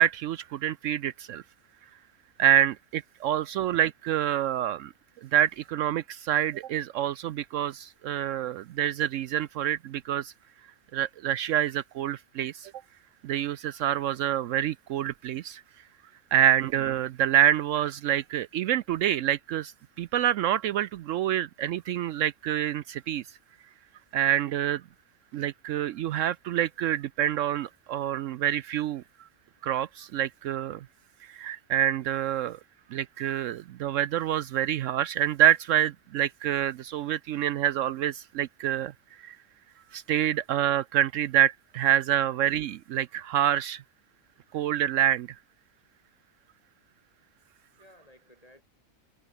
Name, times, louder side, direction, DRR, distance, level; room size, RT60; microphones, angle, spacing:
voice 1, 0.0-1.4 2.4-4.9 5.2-10.3 10.9-12.7 13.2-15.6 16.3-23.2 24.1-24.8 25.3-29.0 29.6-30.8 31.2-32.6 32.9-38.9 39.2-39.4 39.9-43.8 44.5-45.3, right 11 dB, 75° right, 0.9 m, -27 dB
voice 2, 47.8-48.6, left 1 dB, 25° left, 7.6 m, -58 dB
omnidirectional pair, 1.4 m